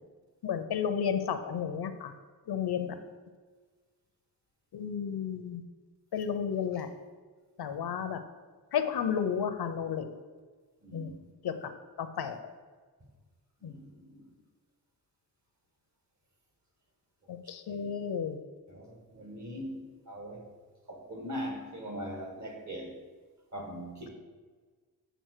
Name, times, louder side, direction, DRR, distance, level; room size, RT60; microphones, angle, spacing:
voice 1, 0.4-2.1 2.5-3.0 4.7-5.6 6.1-6.9 7.6-8.2 8.7-10.1 10.9-11.1 11.4-11.7 12.0-12.5 13.6-13.8 17.3-18.4, left 7 dB, 80° left, 9 dB, 0.8 m, -32 dB
voice 2, 10.8-11.3 13.6-14.3 17.4-17.9 18.7-20.5 20.9-23.0 23.5-24.1, equal, 45° right, 1 dB, 1.9 m, -41 dB
9.3 x 3.9 x 6.6 m, 1.5 s
wide cardioid pair, 120°, 38 cm